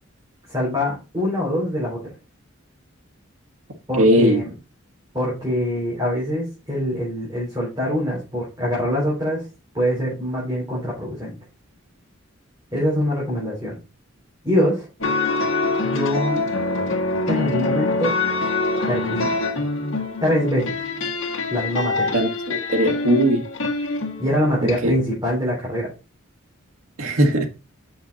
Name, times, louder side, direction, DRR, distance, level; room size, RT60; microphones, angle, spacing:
voice 1, 0.5-2.0 3.9-4.4 5.1-9.4 9.7-11.3 12.7-13.8 14.4-14.9 15.8-16.5 17.3-18.2 18.9-19.3 20.2-20.8 21.5-22.2 24.2-25.9, equal, 20° right, 4.0 m, -24 dB
voice 2, 4.0-4.4 22.1-23.4 24.8-24.9 27.0-27.5, equal, 85° right, 1.6 m, -18 dB
sound 1, 15.0-24.8, left 3 dB, 70° left, 1.6 m, -25 dB
6.9 x 6.4 x 4.0 m
head